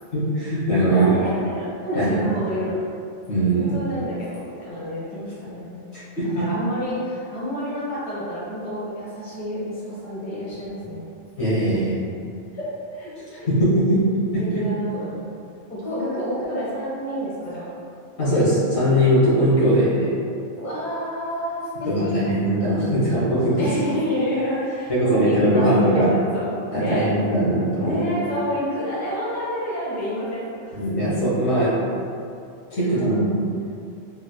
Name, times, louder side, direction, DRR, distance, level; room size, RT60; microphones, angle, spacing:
voice 1, 0.1-1.1 1.9-2.2 3.3-3.7 5.9-6.4 11.4-12.0 13.5-14.0 14.3-14.6 18.2-20.2 21.9-23.6 24.9-26.1 26.7-28.0 30.7-31.7 32.0-32.1 32.7-33.3, right 1 dB, 70° left, -10 dB, 1.3 m, -20 dB
voice 2, 0.8-2.8 3.2-5.8 6.3-11.0 12.5-13.5 14.5-15.2 15.7-17.7 20.5-22.2 23.6-26.0 26.3-27.4 27.7-30.7 32.7-32.9, equal, 45° left, -10 dB, 1.1 m, -29 dB
3.4 x 2.9 x 2.2 m, 2.4 s
omnidirectional pair, 1.2 m